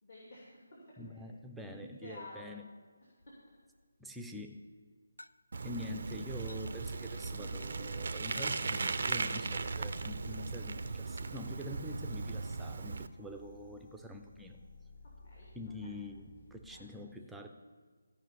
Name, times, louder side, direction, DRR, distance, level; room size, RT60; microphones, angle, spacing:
voice 1, 0.0-1.3 1.7-2.5 15.2-15.9 16.7-16.8, left 2 dB, 45° left, -5 dB, 3.0 m, -52 dB
voice 2, 1.0-2.6 4.0-4.8 5.6-14.6 15.5-16.2 16.5-17.5, left 1 dB, 5° right, 4 dB, 0.6 m, -45 dB
sound 1, 3.2-3.8 5.2-5.3 6.5-6.7 7.6-7.7 8.3-8.7, left 2 dB, 75° left, 0.5 m, -51 dB
Bicycle, 5.5-13.1, right 4 dB, 50° right, 0.5 m, -37 dB
sound 2, 5.9-16.9, left 2 dB, 30° left, 3.6 m, -56 dB
14.0 x 5.7 x 8.4 m, 1.6 s
figure-of-eight pair, 150°, 0 cm